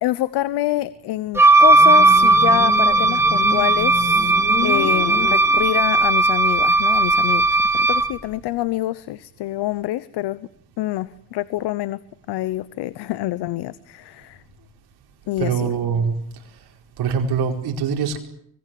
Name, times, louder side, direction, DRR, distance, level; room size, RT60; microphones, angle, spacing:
voice 1, 0.0-4.4 4.6-10.5 10.8-12.0 12.3-14.4 15.3-15.7, left 16 dB, 85° left, 16 dB, 0.9 m, -26 dB
Wind instrument woodwind instrument, 1.3-8.1, right 2 dB, 5° right, 1.7 m, -16 dB
Motorcycle, 1.6-6.0, left 5 dB, 40° left, 2.7 m, -30 dB
voice 2, 15.4-16.7 17.0-18.2, right 6 dB, 70° right, 2 dB, 4.9 m, -24 dB
25.0 x 20.0 x 7.7 m, 0.69 s
cardioid pair, 115°, 39 cm